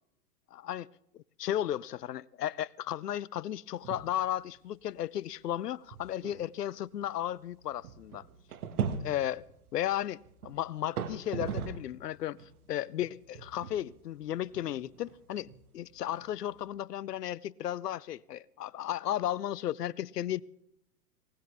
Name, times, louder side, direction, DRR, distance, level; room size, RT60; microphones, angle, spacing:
voice 1, 0.5-0.9 1.1-8.2 9.0-9.4 9.7-12.4 12.7-20.4, left 12 dB, 80° left, 0.7 m, -34 dB
sound 1, 3.7-4.2 4.6-4.7 5.3-5.4 5.9-12.0 12.4-16.7, right 7 dB, 65° right, 1.7 m, -40 dB
20.0 x 19.0 x 3.4 m
hypercardioid pair, 105°, 47 cm